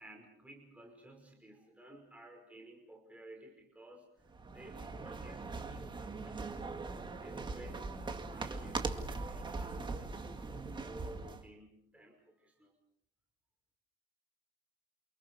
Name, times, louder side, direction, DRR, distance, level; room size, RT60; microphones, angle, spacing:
voice 1, 0.0-6.5 7.2-8.0 8.3-12.8, right 1 dB, 5° right, 1 dB, 5.4 m, -54 dB
sound 1, 4.3-11.5, right 3 dB, 25° right, 2.1 m, -41 dB
29.5 x 28.5 x 4.7 m, 0.66 s
cardioid pair, 145°, 19 cm